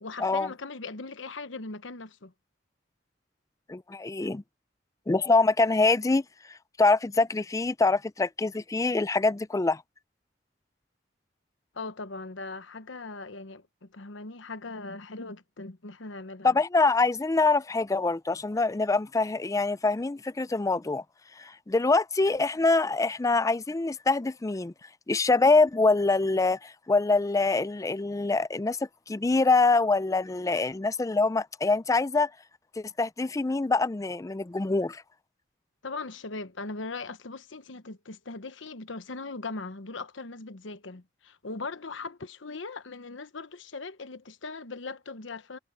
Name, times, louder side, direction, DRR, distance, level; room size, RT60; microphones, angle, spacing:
voice 1, 0.0-2.3 11.7-16.6 35.8-45.6, left 3 dB, 85° left, 1.1 m, -39 dB
voice 2, 3.7-4.4 5.1-6.2 6.5-9.8 16.4-21.0 21.4-24.7 25.1-28.8 29.1-32.3 32.8-35.0, left 3 dB, 15° left, 0.4 m, -25 dB
head